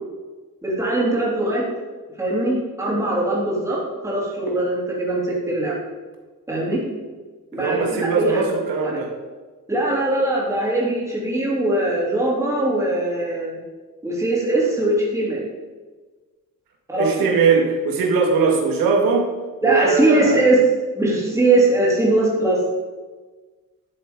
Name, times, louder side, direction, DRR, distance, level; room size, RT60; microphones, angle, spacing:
voice 1, 0.6-1.6 2.2-5.7 6.5-6.8 7.5-8.4 8.8-9.0 9.7-13.6 14.0-15.4 16.9-17.3 19.6-20.6 20.9-22.6, right 2 dB, 10° right, -5 dB, 3.4 m, -21 dB
voice 2, 7.5-9.1 17.0-19.3 19.6-20.5, right 5 dB, 85° right, 1 dB, 2.1 m, -20 dB
11.5 x 7.3 x 5.2 m, 1.3 s
cardioid pair, 160°, 34 cm